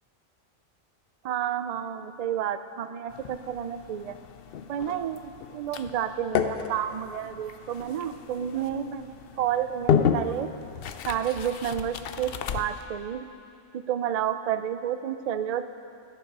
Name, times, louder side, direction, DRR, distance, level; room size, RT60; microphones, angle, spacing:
voice 1, 1.2-4.2 4.7-10.5 11.1-13.3 13.7-15.7, right 9 dB, 85° right, 10 dB, 0.3 m, -30 dB
sound 1, 3.1-12.9, left 7 dB, 60° left, 0.7 m, -32 dB
14.0 x 10.5 x 5.3 m, 2.6 s
omnidirectional pair, 1.2 m